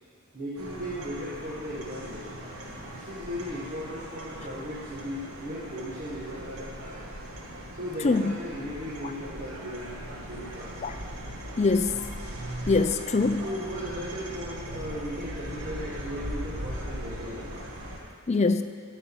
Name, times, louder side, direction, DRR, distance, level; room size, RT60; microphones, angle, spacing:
voice 1, 0.3-2.3 2.9-7.1 7.8-10.0 10.3-11.0 13.4-17.6, equal, 35° right, -9 dB, 1.8 m, -37 dB
sound 1, 0.6-18.0, equal, 70° right, 1.6 m, -39 dB
voice 2, 11.6-12.0 12.7-13.4 18.3-18.6, left 3 dB, 30° left, 8 dB, 0.4 m, -23 dB
11.0 x 5.4 x 7.1 m, 2.1 s
head